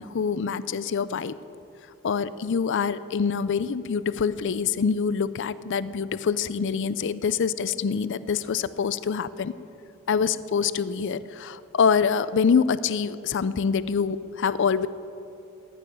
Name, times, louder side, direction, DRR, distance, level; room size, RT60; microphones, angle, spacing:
voice 1, 0.0-1.4 2.0-9.5 10.1-14.9, left 6 dB, 60° left, 16 dB, 0.4 m, -25 dB
15.5 x 6.9 x 9.8 m, 2.8 s
head